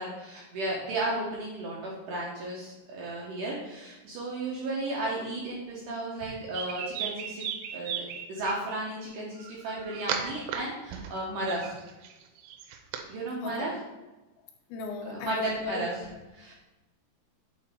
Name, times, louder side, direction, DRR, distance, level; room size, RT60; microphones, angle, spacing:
voice 1, 0.0-7.5 7.7-8.0 8.3-11.7 13.1-13.7 15.1-15.9 16.4-16.5, right 2 dB, 70° right, -4 dB, 2.0 m, -34 dB
sound 1, 6.2-8.5 9.4-10.6 10.9-13.0, right 8 dB, 85° right, 2.9 m, -36 dB
voice 2, 13.4-13.7 14.7-16.2, left 4 dB, 85° left, 3 dB, 3.0 m, -36 dB
8.9 x 4.3 x 4.4 m, 1.1 s
omnidirectional pair, 5.0 m